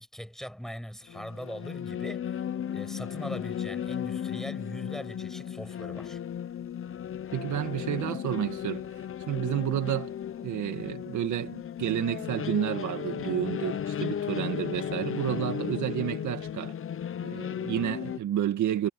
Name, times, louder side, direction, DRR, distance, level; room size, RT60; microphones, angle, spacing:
voice 1, 0.0-2.4 2.7-6.2, equal, ahead, 6.8 m, -41 dB
sound 1, 1.1-18.2, left 9 dB, 45° left, 0.9 m, -35 dB
voice 2, 7.3-8.9 9.3-10.1 10.4-16.8 17.2-18.9, right 11 dB, 75° right, 2.1 m, -30 dB
cardioid pair, 90°, 30 cm